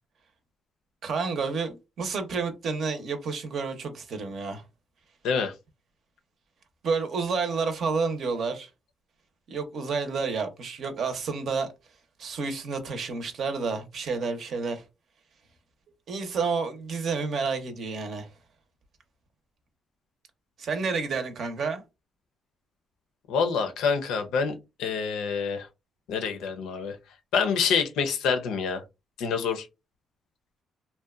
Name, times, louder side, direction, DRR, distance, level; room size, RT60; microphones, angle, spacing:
voice 1, 1.0-4.6 6.8-8.7 9.5-11.7 12.2-14.8 16.1-18.3 20.6-21.8, right 4 dB, 60° right, 0.6 m, -30 dB
voice 2, 23.3-24.5 24.8-25.7 26.1-27.0 27.3-28.8 29.2-29.7, left 6 dB, 90° left, 0.5 m, -26 dB
2.8 x 2.2 x 2.3 m
cardioid pair, 90°, 0 cm